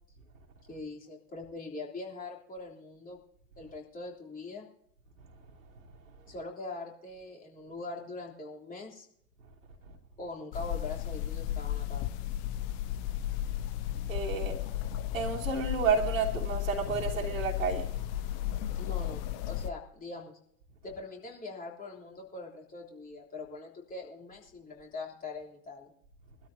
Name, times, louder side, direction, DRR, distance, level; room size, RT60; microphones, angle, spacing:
voice 1, 0.7-3.2 3.6-4.7 6.3-9.1 10.2-12.1 18.8-20.4 20.8-25.9, left 3 dB, 20° left, -2 dB, 3.3 m, -42 dB
sound 1, 10.5-19.7, left 12 dB, 40° left, 0.8 m, -34 dB
voice 2, 14.1-14.6 15.1-17.9, right 5 dB, 75° right, -2 dB, 2.9 m, -30 dB
23.5 x 13.0 x 2.8 m, 0.73 s
figure-of-eight pair, 85°, 40 cm